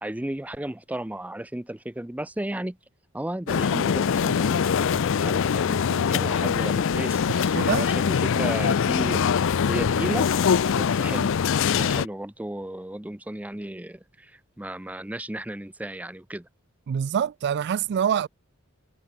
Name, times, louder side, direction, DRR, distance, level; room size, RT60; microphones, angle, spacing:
voice 1, 0.0-2.8 3.1-9.2 9.7-10.3 10.7-16.5, right 1 dB, 5° right, 0.6 m, -34 dB
sound 1, 3.5-12.1, left 6 dB, 65° left, 0.5 m, -23 dB
voice 2, 7.5-7.9 16.9-18.3, right 8 dB, 50° right, 0.3 m, -25 dB
head